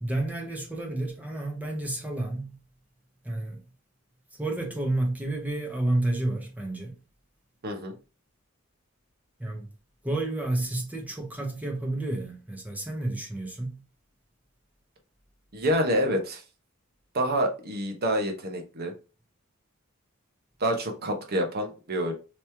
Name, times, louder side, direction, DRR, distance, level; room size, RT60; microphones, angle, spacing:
voice 1, 0.0-2.5 3.2-3.6 4.4-7.0 9.4-9.7 10.0-13.8, right 2 dB, 10° right, 1.0 m, -30 dB
voice 2, 7.6-7.9 15.5-16.4 17.1-18.9 20.6-22.1, equal, 50° right, 0.9 m, -27 dB
3.1 x 3.0 x 3.4 m
head